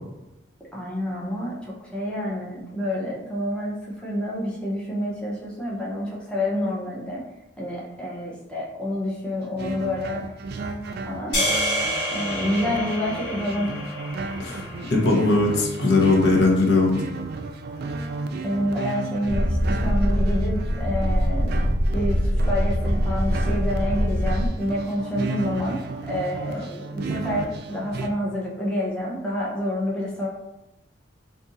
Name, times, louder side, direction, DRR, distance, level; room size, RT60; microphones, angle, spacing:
voice 1, 0.7-7.2 7.6-10.3 11.0-11.4 12.1-13.7 18.4-21.6 21.9-25.8 26.1-30.3, left 1 dB, 5° left, -5 dB, 0.6 m, -28 dB
sound 1, 9.6-28.1, right 3 dB, 55° right, 0.3 m, -34 dB
sound 2, 11.3-15.7, equal, 80° left, 1.4 m, -29 dB
voice 2, 14.9-17.0, left 3 dB, 65° left, -1 dB, 0.8 m, -19 dB
sound 3, 19.3-24.5, equal, 40° left, 0.3 m, -23 dB
2.6 x 2.5 x 3.9 m, 0.96 s
head